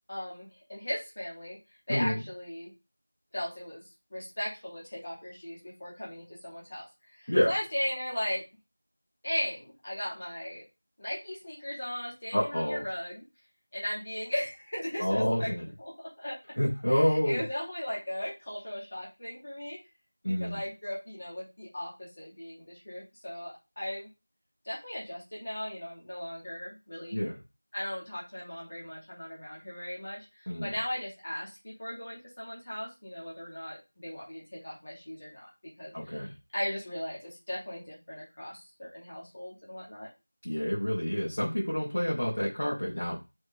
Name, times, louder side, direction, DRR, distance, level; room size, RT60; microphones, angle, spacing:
voice 1, 0.1-1.6 1.9-2.7 3.3-3.8 4.1-8.4 9.2-10.6 11.0-13.2 13.7-15.5 15.8-16.4 16.9-19.8 20.2-24.1 24.6-27.3 27.7-35.5 35.8-40.1, left 1 dB, 25° left, -6 dB, 3.1 m, -37 dB
voice 2, 1.9-2.2 7.3-7.5 12.3-12.8 15.0-15.6 16.6-17.4 20.2-20.6 27.1-27.3 30.5-30.7 35.9-36.3 40.4-43.2, equal, 55° left, -5 dB, 3.1 m, -28 dB
5.9 x 4.7 x 3.6 m, 0.26 s
figure-of-eight pair, 175°, 0 cm